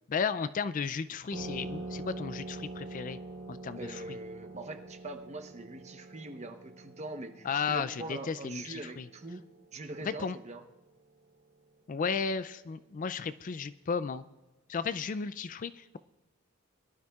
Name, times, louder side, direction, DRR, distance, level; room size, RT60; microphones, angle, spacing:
voice 1, 0.1-3.2 3.5-4.0 7.4-9.1 10.0-10.4 11.9-14.2 14.7-16.0, left 5 dB, 40° left, 14 dB, 0.3 m, -34 dB
sound 1, 1.3-10.5, right 2 dB, 65° right, 3.2 m, -45 dB
voice 2, 3.8-9.4 9.7-10.6, right 2 dB, 30° right, 6 dB, 1.0 m, -43 dB
22.0 x 12.0 x 2.4 m, 1.1 s
head